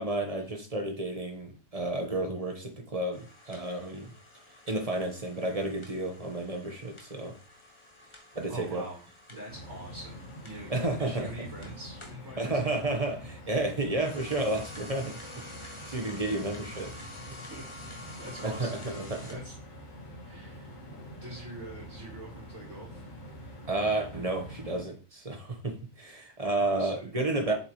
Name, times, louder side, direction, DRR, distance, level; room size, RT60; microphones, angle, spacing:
voice 1, 0.0-4.1 4.7-7.3 8.3-8.8 10.7-11.3 12.4-15.2 15.6-17.0 18.4-19.4 23.7-27.5, right 2 dB, 25° right, 3 dB, 1.3 m, -31 dB
sound 1, 3.1-12.2 13.8-19.3, left 1 dB, 20° left, 1.2 m, -49 dB
voice 2, 8.5-9.0 9.3-10.7 11.0-12.8 17.3-17.7 18.0-19.5 20.3-20.7 21.2-23.1 26.2-26.3 26.6-27.6, right 1 dB, 60° right, -9 dB, 4.4 m, -44 dB
sound 2, 9.5-24.8, equal, 65° left, 2.4 m, -46 dB
7.5 x 6.7 x 3.2 m, 0.36 s
omnidirectional pair, 1.5 m